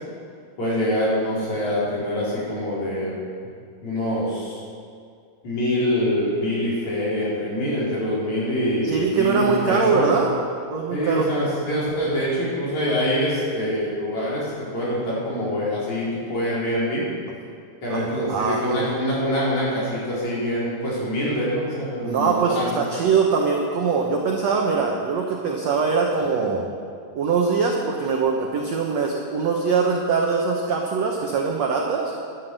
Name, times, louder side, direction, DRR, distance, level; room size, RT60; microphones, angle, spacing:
voice 1, 0.6-3.2 3.8-4.6 5.4-10.1 10.9-17.1 17.8-22.7 26.4-26.5, equal, 45° left, -8 dB, 5.9 m, -25 dB
voice 2, 8.8-10.3 10.7-11.3 17.9-18.9 22.0-26.6 27.2-32.1, right 5 dB, 65° right, 0 dB, 1.7 m, -22 dB
13.0 x 10.5 x 8.1 m, 2.2 s
omnidirectional pair, 4.4 m